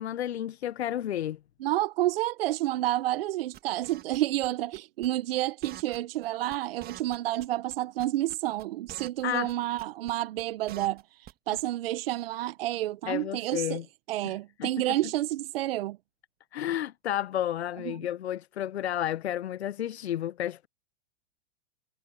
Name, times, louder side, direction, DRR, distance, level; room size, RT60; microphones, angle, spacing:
voice 1, 0.0-1.4 9.2-9.5 13.1-13.8 14.2-14.3 14.6-14.7 16.5-20.7, left 11 dB, 85° left, 0.9 m, -31 dB
voice 2, 1.6-13.8 14.1-16.0 17.8-18.0, right 15 dB, 65° right, 1.2 m, -30 dB
sound 1, 3.5-4.5 4.7-5.1 5.3-5.4 5.6-6.3 6.5-6.6 6.8-7.7 8.0-9.2 9.5-9.6 9.8-10.1 10.4-11.3 11.6-11.7, right 13 dB, 30° right, 1.5 m, -46 dB
hypercardioid pair, 115°, 32 cm